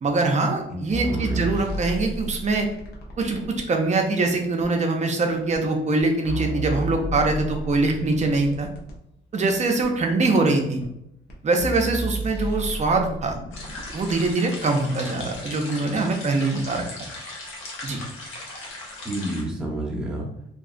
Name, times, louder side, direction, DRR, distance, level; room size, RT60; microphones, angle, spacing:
voice 1, 0.0-2.7 3.2-8.7 9.3-10.8 11.4-13.4 13.9-16.8 17.8-18.0, right 3 dB, 35° right, 3 dB, 0.5 m, -23 dB
voice 2, 0.7-1.5 19.0-20.3, right 1 dB, 5° right, -3 dB, 0.8 m, -30 dB
sound 1, 0.9-3.6 4.6-4.7 5.5-5.6 6.0-9.0 9.8-9.9 10.8-10.9 11.3-11.4 11.6-14.3 15.3-15.4, right 1 dB, 55° left, 0.7 m, -32 dB
sound 2, 13.5-19.4, left 2 dB, 85° left, 0.8 m, -38 dB
2.8 x 2.3 x 2.5 m, 0.80 s
cardioid pair, 90°, 20 cm